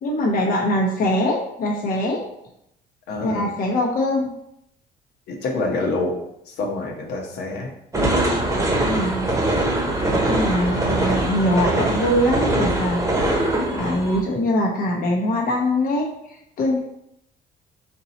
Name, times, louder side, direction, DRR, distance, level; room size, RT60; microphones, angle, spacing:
voice 1, 0.0-2.2 3.2-4.3 8.8-9.3 10.1-13.0 13.4-16.8, left 1 dB, 55° left, -1 dB, 0.9 m, -23 dB
voice 2, 3.1-3.5 5.3-6.1 6.5-7.7, left 2 dB, 80° left, 0 dB, 1.1 m, -26 dB
sound 1, 7.9-14.2, right 1 dB, 20° right, 1.0 m, -22 dB
4.4 x 2.9 x 4.1 m, 0.78 s
cardioid pair, 110°, 17 cm